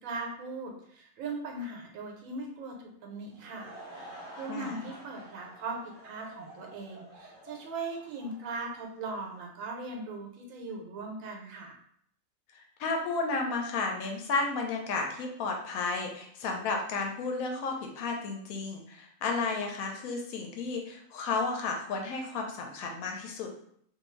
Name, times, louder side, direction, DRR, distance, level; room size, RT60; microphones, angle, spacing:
voice 1, 0.0-11.8, right 3 dB, 75° right, 1 dB, 1.0 m, -39 dB
Laughter / Crowd, 3.1-9.4, right 1 dB, 25° left, 0.6 m, -49 dB
voice 2, 4.5-4.9 12.5-23.5, left 3 dB, 90° left, 1 dB, 1.1 m, -33 dB
2.6 x 2.3 x 3.0 m, 0.66 s
omnidirectional pair, 1.5 m